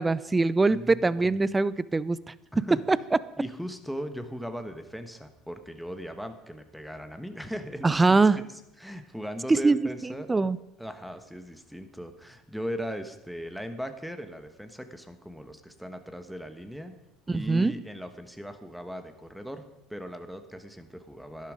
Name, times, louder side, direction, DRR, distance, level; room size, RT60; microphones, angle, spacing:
voice 1, 0.0-2.2 2.9-3.0 7.8-8.4 9.5-9.9 10.3-10.6 17.3-17.7, right 3 dB, 20° right, 19 dB, 0.5 m, -22 dB
voice 2, 0.7-1.4 2.5-2.8 3.4-8.0 8.3-8.5 8.8-10.3 10.8-16.9 17.3-19.6 19.9-21.5, equal, ahead, 8 dB, 1.3 m, -38 dB
12.0 x 10.5 x 5.0 m, 0.87 s
hypercardioid pair, 75°, 0 cm